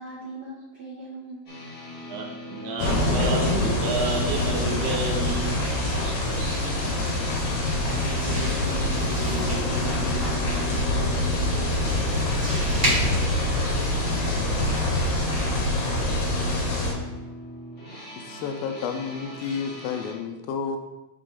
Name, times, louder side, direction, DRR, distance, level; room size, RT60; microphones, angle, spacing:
voice 1, 0.0-1.5 7.4-10.4, right 2 dB, 60° right, -8 dB, 1.8 m, -40 dB
sound 1, 1.4-20.1, left 1 dB, 50° left, 1.2 m, -40 dB
voice 2, 2.1-5.6 6.0-6.5, right 4 dB, 75° right, -2 dB, 2.8 m, -31 dB
sound 2, 2.8-16.9, left 1 dB, 65° left, 2.7 m, -25 dB
sound 3, 7.9-14.0, right 1 dB, 45° right, 1.2 m, -34 dB
voice 3, 12.8-13.4 18.2-20.8, left 6 dB, 80° left, 7 dB, 3.1 m, -31 dB
6.5 x 6.2 x 3.7 m, 1.0 s
omnidirectional pair, 6.0 m